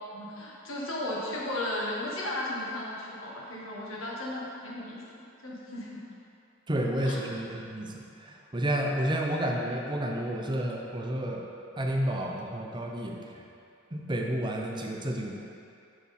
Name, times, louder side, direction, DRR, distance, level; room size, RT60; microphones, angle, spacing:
voice 1, 0.1-6.0 7.0-7.2, left 1 dB, 85° left, -4 dB, 1.5 m, -35 dB
voice 2, 6.7-11.4 11.8-13.2 13.9-15.3, right 1 dB, 25° right, 0 dB, 0.7 m, -30 dB
7.1 x 6.0 x 4.2 m, 2.6 s
head